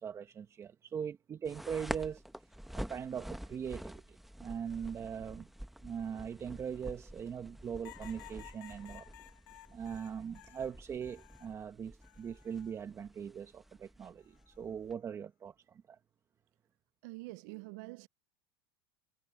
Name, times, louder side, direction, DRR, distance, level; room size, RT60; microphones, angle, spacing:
voice 1, 0.0-2.2 2.7-5.5 5.8-9.1 9.7-16.0, right 7 dB, 25° right, 1.2 m, -41 dB
sound 1, 1.4-14.9, equal, ahead, 1.0 m, -48 dB
sound 2, 7.8-11.6 12.0-12.8 14.2-14.6, left 19 dB, 75° left, 0.9 m, -55 dB
voice 2, 17.0-18.1, right 24 dB, 60° right, 0.7 m, -46 dB
supercardioid pair, 130°, 11 cm